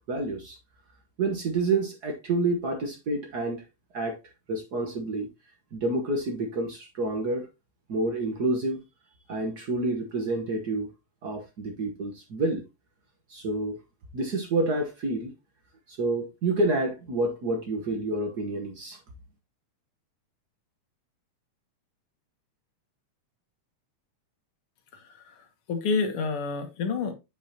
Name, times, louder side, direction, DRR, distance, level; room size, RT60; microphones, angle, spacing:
voice 1, 0.1-0.6 1.2-3.6 3.9-4.2 4.5-5.3 5.7-7.5 7.9-8.8 9.3-10.9 11.2-12.6 13.3-13.8 14.1-15.3 15.9-19.0, right 2 dB, 80° right, 0.8 m, -28 dB
voice 2, 24.9-27.1, left 4 dB, 55° left, 1.7 m, -29 dB
8.7 x 5.4 x 2.8 m
omnidirectional pair, 3.6 m